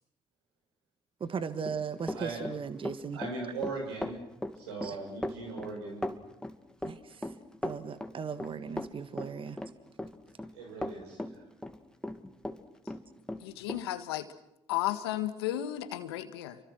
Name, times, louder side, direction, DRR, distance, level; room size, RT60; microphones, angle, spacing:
voice 1, 1.2-3.2 4.8-5.0 6.8-7.3 7.6-9.6, right 6 dB, 45° right, 11 dB, 1.7 m, -37 dB
Run, 1.4-12.6 12.9-13.8, left 1 dB, 5° left, 2.5 m, -38 dB
voice 2, 3.1-4.2 4.6-6.0 10.5-11.4, right 3 dB, 85° right, 1 dB, 7.2 m, -39 dB
voice 3, 13.4-14.3 14.7-16.6, left 13 dB, 90° left, 11 dB, 1.7 m, -33 dB
29.0 x 24.5 x 6.4 m, 0.82 s
hypercardioid pair, 55°, 13 cm